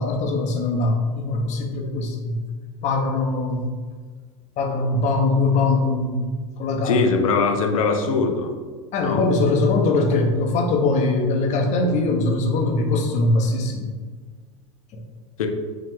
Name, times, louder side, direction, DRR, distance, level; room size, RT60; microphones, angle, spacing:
voice 1, 0.0-2.4 2.8-3.7 4.6-7.0 8.9-13.9 14.9-15.0, left 2 dB, 45° left, 2 dB, 0.9 m, -22 dB
voice 2, 6.8-8.5 9.0-9.2 15.4-15.5, left 4 dB, 80° left, 4 dB, 0.6 m, -21 dB
4.8 x 2.4 x 3.7 m, 1.5 s
hypercardioid pair, 90°, 17 cm